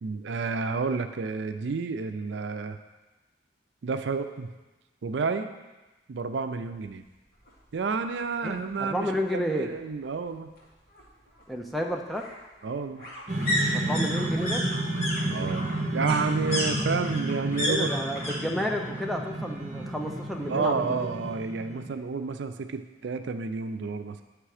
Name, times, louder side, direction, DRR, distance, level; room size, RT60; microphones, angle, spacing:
voice 1, 0.0-2.8 3.8-4.5 5.0-5.5 6.1-7.0 7.7-10.5 12.6-13.1 15.3-17.9 20.5-24.2, right 4 dB, 80° right, 8 dB, 0.4 m, -30 dB
sound 1, 7.5-7.6 7.9-8.0 8.3-9.3 10.6-18.4 18.6-19.2 19.4-20.5 20.8-20.9, equal, 55° left, 2.0 m, -33 dB
voice 2, 8.4-9.7 11.5-12.2 13.7-14.6 17.7-21.1, equal, ahead, 2 dB, 0.4 m, -31 dB
sound 2, 13.3-21.9, right 1 dB, 40° right, 0.9 m, -31 dB
9.1 x 3.3 x 4.9 m, 1.1 s
head